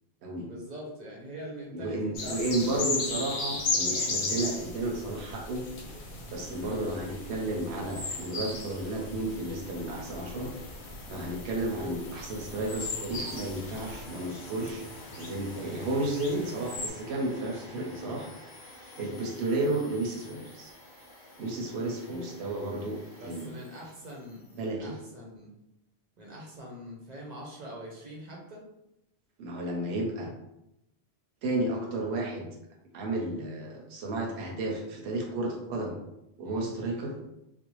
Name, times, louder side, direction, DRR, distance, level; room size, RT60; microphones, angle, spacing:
voice 1, 0.4-2.8 3.6-3.9 6.6-6.8 11.8-12.1 19.0-19.3 22.0-22.3 23.2-25.5 26.2-28.6 36.4-36.7, equal, 50° right, -2 dB, 0.6 m, -43 dB
voice 2, 1.7-5.6 6.3-10.5 11.1-14.8 15.2-18.3 18.9-20.7 21.4-23.5 24.6-24.9 29.4-30.3 31.4-32.5 32.9-36.0 36.4-37.2, right 2 dB, 85° right, 0 dB, 0.8 m, -32 dB
sound 1, 2.1-16.9, left 3 dB, 85° left, 0.9 m, -36 dB
Domestic sounds home sounds, 5.8-24.7, left 1 dB, 35° left, 0.5 m, -51 dB
2.5 x 2.1 x 3.0 m, 0.85 s
omnidirectional pair, 1.1 m